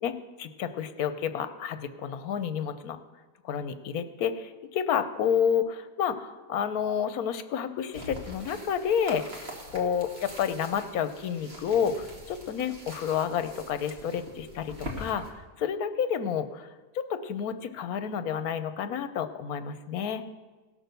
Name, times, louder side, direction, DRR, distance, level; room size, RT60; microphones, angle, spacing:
voice 1, 0.0-3.0 3.4-10.1 10.4-16.7 16.9-20.2, left 8 dB, 80° left, 11 dB, 1.2 m, -30 dB
sound 1, 7.9-15.3, equal, 45° right, 2.0 m, -44 dB
17.5 x 6.2 x 6.7 m, 1.3 s
omnidirectional pair, 1.6 m